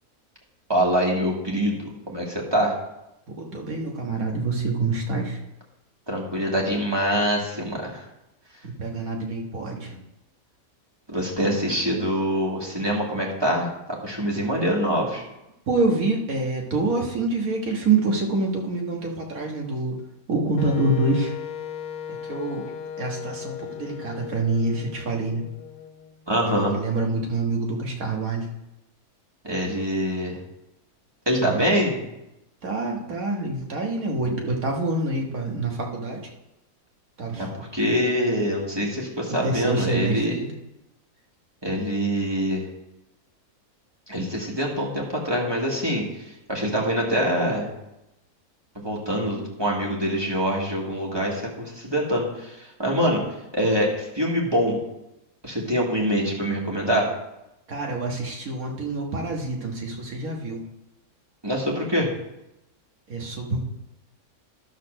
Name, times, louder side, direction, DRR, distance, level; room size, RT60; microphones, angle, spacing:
voice 1, 0.7-2.8 6.1-8.0 11.1-15.2 26.3-26.8 29.4-30.4 31.3-32.0 37.4-40.4 41.6-42.7 44.1-46.0 46.5-47.7 48.8-53.2 53.5-54.8 55.4-57.1 61.4-62.1, equal, 15° right, -3 dB, 1.8 m, -24 dB
voice 2, 3.4-5.4 8.6-10.0 15.7-20.0 20.3-21.3 22.3-22.7 23.0-25.4 26.5-28.5 31.4-31.6 32.6-36.2 37.2-37.5 39.4-40.5 57.7-60.6 63.1-63.6, right 3 dB, 70° right, 0 dB, 1.9 m, -26 dB
Wind instrument woodwind instrument, 20.6-26.4, left 9 dB, 75° left, 1.1 m, -37 dB
12.0 x 4.2 x 6.3 m, 0.90 s
omnidirectional pair, 1.6 m